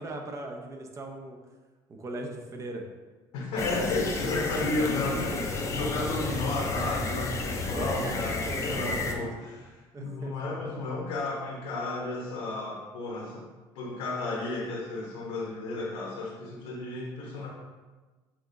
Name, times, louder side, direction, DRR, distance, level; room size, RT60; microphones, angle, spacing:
voice 1, 0.0-1.4 1.9-2.8 4.6-4.7 5.0-5.7 6.3-6.7 7.7-9.6 9.9-10.5, right 2 dB, 30° right, 2 dB, 0.6 m, -39 dB
voice 2, 3.3-13.4 13.7-17.5, left 2 dB, 80° left, -3 dB, 0.9 m, -33 dB
sound 1, 3.6-9.1, left 3 dB, 30° left, 0.5 m, -32 dB
5.9 x 2.9 x 2.6 m, 1.3 s
cardioid pair, 105°, 10 cm